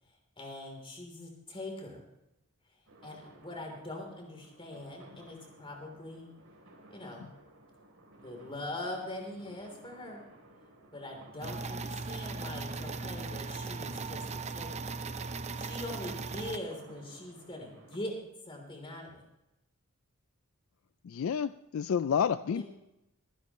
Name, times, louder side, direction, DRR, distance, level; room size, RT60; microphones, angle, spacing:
voice 1, 0.4-2.0 3.0-6.3 6.9-7.3 8.2-10.2 10.9-15.0 15.5-18.1 18.5-19.2 22.5-22.7, left 1 dB, 25° left, 1 dB, 3.4 m, -42 dB
sound 1, 2.9-18.0, right 1 dB, 75° right, 3.5 m, -57 dB
sound 2, 11.4-16.6, right 4 dB, 30° right, 0.6 m, -38 dB
voice 2, 21.0-22.7, left 7 dB, 65° left, 13 dB, 0.3 m, -30 dB
25.0 x 9.9 x 3.1 m, 0.88 s
head